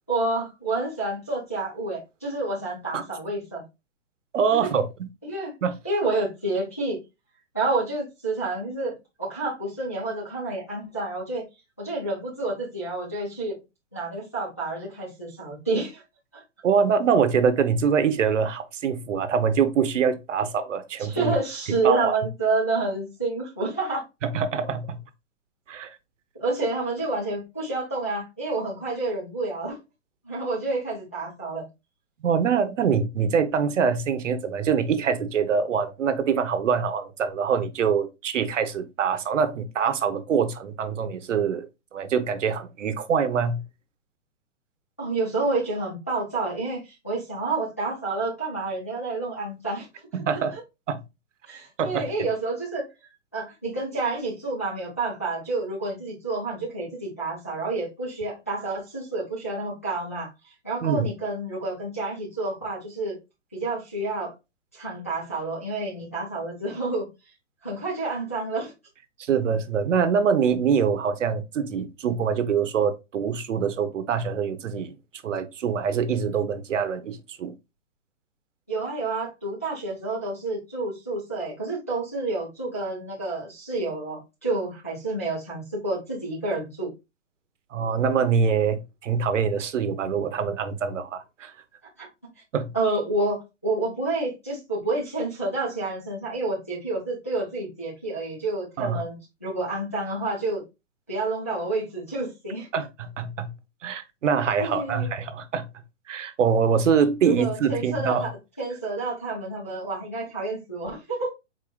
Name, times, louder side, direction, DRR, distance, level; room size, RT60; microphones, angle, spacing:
voice 1, 0.1-3.6 4.6-4.7 5.2-5.5 5.8-7.0 7.5-11.5 11.8-13.6 13.9-16.0 16.3-16.4 21.1-24.0 26.3-29.8 30.2-31.7 45.0-49.9 51.5-52.8 53.3-60.3 60.6-63.2 63.5-64.3 64.7-67.1 67.6-68.7 78.7-86.9 92.0-92.1 92.7-100.6 101.1-102.7 104.6-105.1 107.2-108.3 108.6-111.3, right 3 dB, 15° left, 0.4 m, -29 dB
voice 2, 4.3-5.1 5.6-5.7 16.6-21.4 21.8-22.1 24.2-25.0 25.7-25.9 32.2-43.6 50.1-50.5 50.9-51.0 51.8-52.1 60.8-61.1 69.2-75.0 75.2-77.5 87.7-91.5 92.5-92.7 98.8-99.0 102.7-103.5 103.8-105.7 106.1-108.3, right 6 dB, 85° right, 0.9 m, -24 dB
5.0 x 4.1 x 2.3 m
hypercardioid pair, 175°, 37 cm